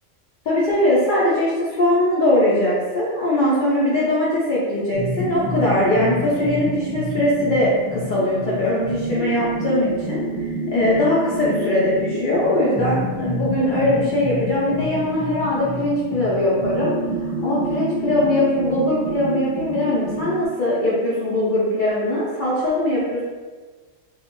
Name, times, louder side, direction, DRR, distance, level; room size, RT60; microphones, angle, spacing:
voice 1, 0.5-16.9 17.2-23.2, left 1 dB, 65° left, -8 dB, 0.5 m, -21 dB
sound 1, 4.9-20.5, right 1 dB, 10° left, 0.6 m, -28 dB
2.3 x 2.1 x 2.9 m, 1.4 s
omnidirectional pair, 1.3 m